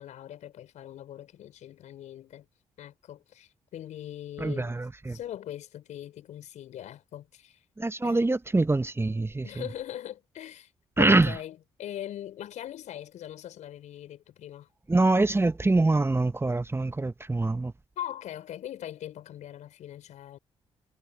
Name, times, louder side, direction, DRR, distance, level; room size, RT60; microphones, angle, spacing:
voice 1, 0.0-2.5 2.8-4.8 5.1-7.6 8.0-8.2 9.4-10.7 11.0-14.7 18.0-20.4, left 11 dB, 75° left, 6.0 m, -41 dB
voice 2, 4.4-5.2 7.8-9.4 11.0-11.3 14.9-17.7, right 2 dB, 20° right, 1.0 m, -24 dB
hypercardioid pair, 45°, 12 cm